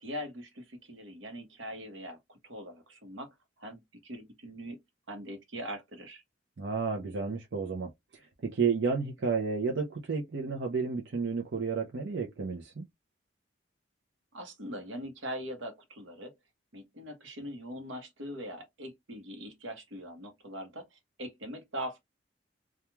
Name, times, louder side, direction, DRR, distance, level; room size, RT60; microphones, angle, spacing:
voice 1, 0.0-4.8 5.1-6.2 14.3-16.3 16.7-22.0, equal, 85° right, 0.9 m, -42 dB
voice 2, 6.6-12.8, right 5 dB, 70° right, 0.6 m, -32 dB
3.0 x 2.3 x 2.2 m
head